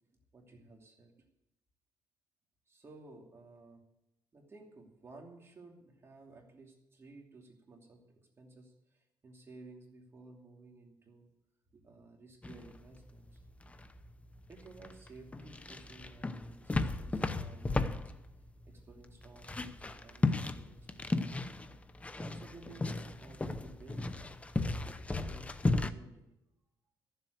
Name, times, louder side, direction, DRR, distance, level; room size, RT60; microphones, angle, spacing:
voice 1, 0.3-1.1 2.7-3.8 4.3-11.3 11.7-13.4 14.5-18.0 18.4-21.1 22.2-24.4 25.1-26.3, right 3 dB, 30° right, 1 dB, 2.8 m, -55 dB
sound 1, 12.4-25.9, left 2 dB, 15° left, 0.7 m, -36 dB
14.0 x 7.6 x 8.0 m, 0.86 s
cardioid pair, 110°, 8 cm